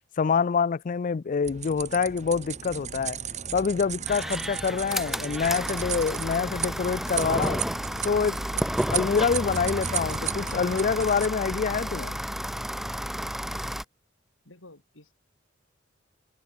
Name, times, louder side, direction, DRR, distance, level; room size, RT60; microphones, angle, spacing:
voice 1, 0.2-3.2 3.5-7.6 8.0-8.4 8.9-12.2, left 5 dB, 40° left, 0.4 m, -26 dB
sound 1, 1.4-11.3, right 7 dB, 35° right, 1.7 m, -35 dB
sound 2, 4.1-13.8, equal, ahead, 1.0 m, -32 dB
voice 2, 14.4-15.1, left 2 dB, 75° left, 4.8 m, -51 dB
head